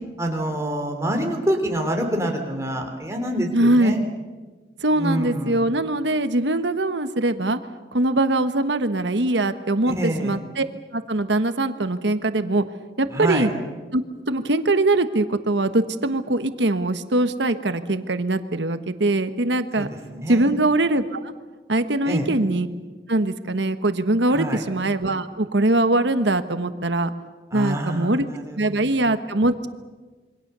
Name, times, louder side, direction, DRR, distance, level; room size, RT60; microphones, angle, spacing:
voice 1, 0.2-4.0 4.9-5.7 9.9-10.4 13.1-13.5 19.8-20.5 22.0-22.3 24.3-24.6 27.5-28.8, right 1 dB, 15° right, 3 dB, 3.3 m, -26 dB
voice 2, 3.5-4.0 4.8-7.6 7.9-10.6 10.9-12.6 13.0-13.5 13.9-19.9 20.3-21.3 21.7-22.7 23.1-27.1 27.5-28.2 28.6-29.7, right 2 dB, 80° right, 10 dB, 1.3 m, -22 dB
27.5 x 23.5 x 6.9 m, 1.3 s
head